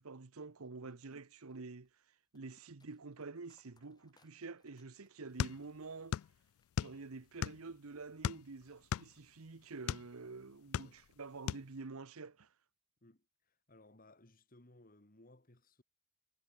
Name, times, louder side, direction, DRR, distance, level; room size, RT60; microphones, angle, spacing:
voice 1, 0.0-1.9 2.3-6.2 6.8-12.5, right 3 dB, 80° right, 1.0 m, -48 dB
sound 1, 0.6-8.8 9.1-9.8 10.2-10.5, left 3 dB, 20° left, 5.9 m, -78 dB
sound 2, 5.4-6.3 6.6-7.7 8.2-10.1 10.5-11.2 11.5-11.7, left 9 dB, 75° left, 0.3 m, -37 dB
voice 2, 13.0-15.8, left 1 dB, 40° left, 2.0 m, -63 dB
head